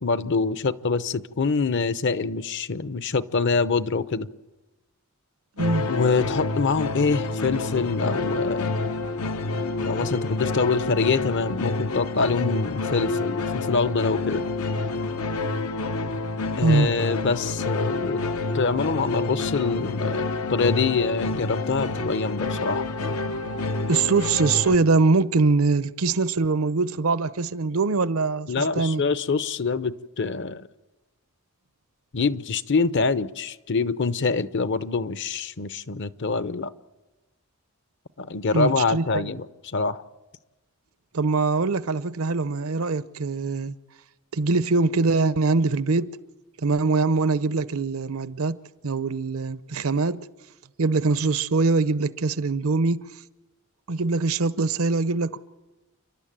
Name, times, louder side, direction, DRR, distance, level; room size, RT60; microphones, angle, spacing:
voice 1, 0.0-4.3 5.9-8.8 9.8-14.4 16.6-18.2 18.5-22.9 28.5-30.7 32.1-36.7 38.2-40.0, left 4 dB, 55° left, 0.7 m, -25 dB
sound 1, 5.6-24.8, left 3 dB, 90° left, 1.0 m, -28 dB
voice 2, 5.6-5.9 16.6-16.9 23.9-29.0 38.5-39.3 41.1-43.8 44.3-46.1 46.6-48.6 48.8-50.3 50.8-53.1 53.9-55.4, right 3 dB, 75° right, 0.7 m, -23 dB
30.0 x 12.0 x 8.9 m
head